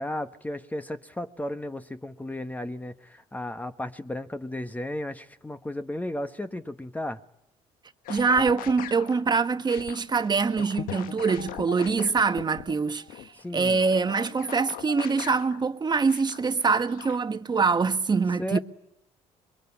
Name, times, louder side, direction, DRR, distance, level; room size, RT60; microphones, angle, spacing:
voice 1, 0.0-7.2 13.4-13.8 18.4-18.6, left 1 dB, 10° left, 1.3 m, -34 dB
sound 1, 8.0-9.2 9.7-15.6 16.1-17.2, left 10 dB, 80° left, 1.3 m, -40 dB
voice 2, 8.1-18.6, right 4 dB, 30° right, 1.4 m, -24 dB
25.0 x 22.5 x 9.9 m
supercardioid pair, 85°, 14 cm